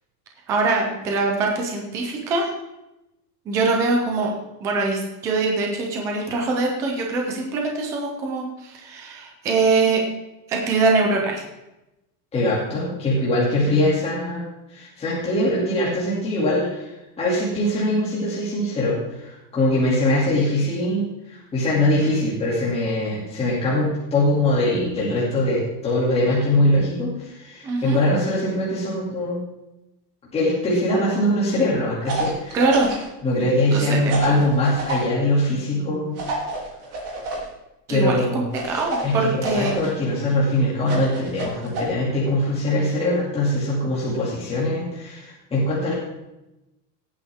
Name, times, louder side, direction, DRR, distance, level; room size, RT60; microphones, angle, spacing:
voice 1, 0.5-2.5 3.5-4.3 4.6-10.0 10.5-11.4 27.6-28.0 32.5-32.9 33.7-33.9 34.3-34.4 37.9-39.8, right 3 dB, 5° right, 1 dB, 0.3 m, -23 dB
voice 2, 12.3-21.0 21.3-29.4 30.3-32.6 33.2-36.2 37.9-38.4 38.7-45.9, left 1 dB, 10° left, -7 dB, 2.4 m, -22 dB
sound 1, 32.1-33.1 34.1-35.0 36.2-37.5 38.5-39.9 40.8-41.8, right 2 dB, 30° right, 2.8 m, -29 dB
17.5 x 8.7 x 3.5 m, 0.94 s
supercardioid pair, 180°, 48 cm